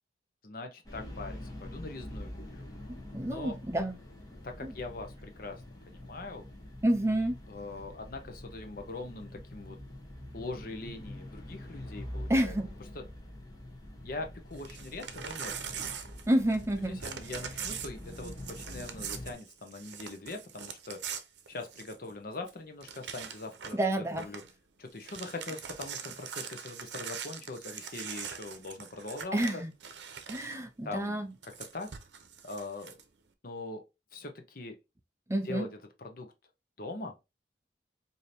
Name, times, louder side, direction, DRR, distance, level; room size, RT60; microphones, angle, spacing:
voice 1, 0.4-2.7 3.3-3.6 4.4-6.5 7.5-9.8 10.3-12.5 12.9-13.0 14.0-15.5 16.9-21.0 21.5-24.4 24.8-29.6 30.8-31.9 32.4-33.0 33.4-33.8 34.1-34.8 35.4-35.7 36.0-36.3 36.8-37.1, left 2 dB, 50° left, 0.8 m, -42 dB
sound 1, 0.9-19.4, left 1 dB, 20° left, 1.1 m, -45 dB
voice 2, 2.9-4.0 4.6-4.7 6.8-7.4 12.3-12.7 16.3-17.0 23.7-24.3 29.3-29.7 30.3-31.3 35.3-35.7, right 1 dB, 15° right, 0.4 m, -29 dB
Crumpling crinkling / Tearing, 14.5-16.7 17.0-22.1 22.5-22.6 22.8-23.9 24.1-24.5 24.9-30.6 31.4-33.0, right 7 dB, 75° right, 0.7 m, -42 dB
4.9 x 2.7 x 2.7 m
head